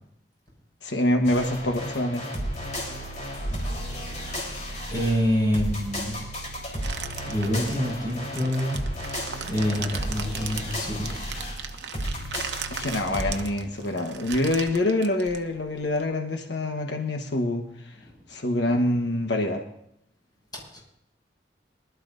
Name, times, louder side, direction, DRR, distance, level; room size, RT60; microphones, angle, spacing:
voice 1, 0.8-2.3 12.8-17.9 18.3-19.6, left 1 dB, 85° left, 3 dB, 1.2 m, -25 dB
sound 1, 1.2-13.4, equal, 45° left, 3.8 m, -33 dB
voice 2, 4.9-6.2 7.2-8.8 9.4-11.4 11.9-12.2 18.0-18.1 20.7-20.8, equal, 25° left, -3 dB, 6.2 m, -27 dB
sound 2, 6.8-16.0, right 7 dB, 75° right, 0.9 m, -38 dB
23.0 x 12.5 x 2.6 m, 0.73 s
head